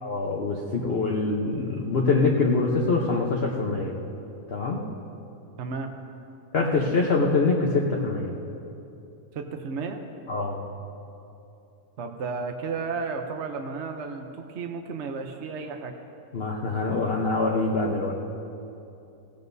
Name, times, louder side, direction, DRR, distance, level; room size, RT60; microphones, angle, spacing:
voice 1, 0.0-3.9 4.5-4.8 6.5-8.3 10.3-10.6 16.3-18.1, left 3 dB, 45° left, -2 dB, 1.0 m, -24 dB
voice 2, 5.6-5.9 9.3-10.0 12.0-15.9, right 4 dB, 55° right, 4 dB, 0.9 m, -33 dB
17.0 x 17.0 x 2.7 m, 2.7 s
omnidirectional pair, 1.9 m